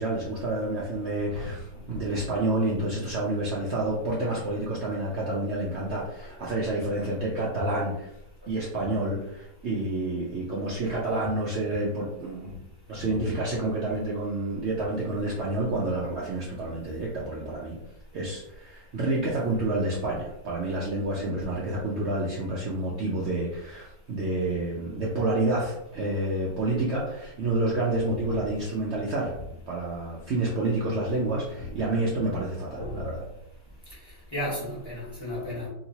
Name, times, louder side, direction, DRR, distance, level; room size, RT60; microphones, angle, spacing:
voice 1, 0.0-8.1 8.5-12.6 12.9-29.3 29.7-33.2, right 2 dB, 80° right, -4 dB, 0.6 m, -29 dB
voice 2, 1.9-2.2 12.9-13.3 28.3-28.5 31.7-31.8 32.8-33.1 34.3-35.7, left 1 dB, 15° left, -7 dB, 1.0 m, -34 dB
2.9 x 2.9 x 2.7 m, 0.83 s
omnidirectional pair, 1.9 m